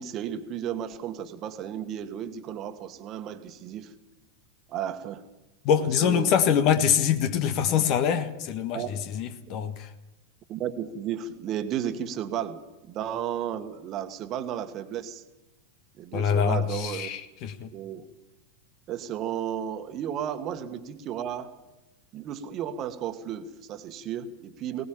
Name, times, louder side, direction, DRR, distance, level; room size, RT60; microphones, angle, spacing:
voice 1, 0.0-3.9 4.7-5.2 6.0-6.3 8.7-9.0 10.5-15.2 16.0-17.1 17.7-18.1 18.9-21.5 22.1-24.9, right 9 dB, 35° right, 9 dB, 1.6 m, -33 dB
voice 2, 5.6-9.9 16.1-17.7, left 8 dB, 45° left, 10 dB, 1.5 m, -24 dB
20.0 x 18.5 x 7.4 m, 0.96 s
figure-of-eight pair, 90°, 0 cm